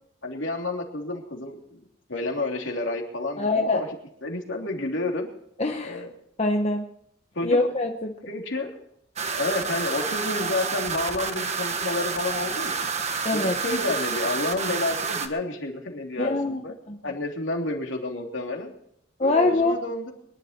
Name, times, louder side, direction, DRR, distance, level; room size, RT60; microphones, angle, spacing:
voice 1, 0.2-3.9 4.2-5.3 5.8-6.1 7.3-7.6 8.3-8.7 9.4-12.9 13.3-16.7 17.0-18.7 19.2-20.1, left 2 dB, 70° left, 1 dB, 3.2 m, -30 dB
voice 2, 3.4-3.8 5.6-6.0 6.4-6.8 7.4-8.1 13.2-13.6 16.2-17.0 19.2-19.8, left 2 dB, 30° left, 3 dB, 1.1 m, -24 dB
sound 1, 9.2-15.3, right 5 dB, 35° right, 1.4 m, -29 dB
23.0 x 11.5 x 4.5 m, 0.72 s
head